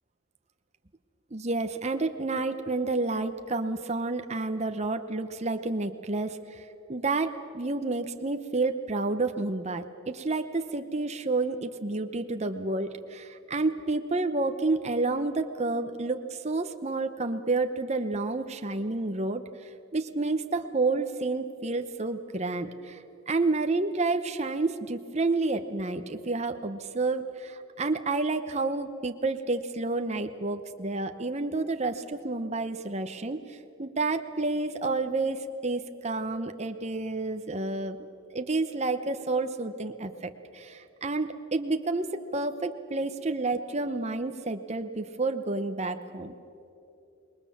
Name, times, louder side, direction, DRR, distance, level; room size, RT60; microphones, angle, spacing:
voice 1, 1.3-38.0 38.3-46.3, right 3 dB, 30° right, 7 dB, 0.8 m, -30 dB
27.0 x 21.0 x 7.2 m, 2.8 s
head